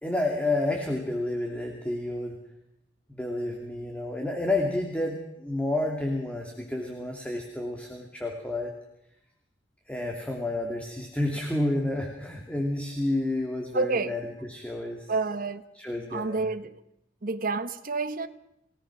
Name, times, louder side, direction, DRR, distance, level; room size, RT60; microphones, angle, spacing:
voice 1, 0.0-2.4 3.1-8.7 9.9-15.1 15.8-16.5, left 2 dB, 5° left, 2.6 m, -30 dB
voice 2, 13.7-14.1 15.1-15.6 16.1-16.7 17.2-18.3, right 3 dB, 50° right, 1.2 m, -28 dB
29.5 x 18.0 x 6.2 m
head